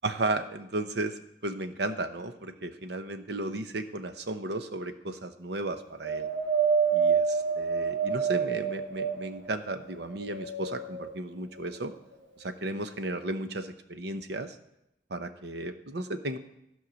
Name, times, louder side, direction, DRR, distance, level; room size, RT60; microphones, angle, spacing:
voice 1, 0.0-6.3 6.9-11.9 12.4-14.6 15.1-16.4, right 2 dB, 60° right, 9 dB, 0.8 m, -34 dB
Wind, 6.0-9.5 10.1-11.1 11.9-12.0, right 6 dB, 90° right, 3.0 m, -27 dB
14.5 x 5.5 x 6.2 m, 0.84 s
head